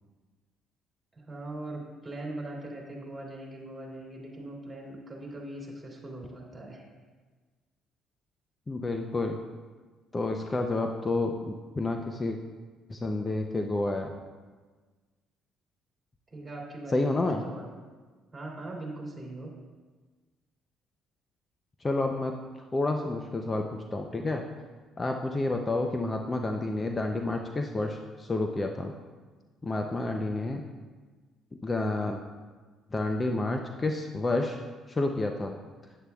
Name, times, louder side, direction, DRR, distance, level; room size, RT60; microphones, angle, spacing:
voice 1, 1.1-6.8 16.3-17.7 18.3-19.5, right 2 dB, 25° right, -2 dB, 2.9 m, -40 dB
voice 2, 8.7-9.4 10.1-12.4 12.9-14.1 16.9-17.4 21.8-22.3 22.7-24.4 25.0-28.9 29.6-30.6 31.6-32.2 32.9-34.6 34.9-35.5, left 2 dB, 25° left, 4 dB, 0.6 m, -29 dB
11.0 x 9.1 x 2.4 m, 1.4 s
supercardioid pair, 80°, 0 cm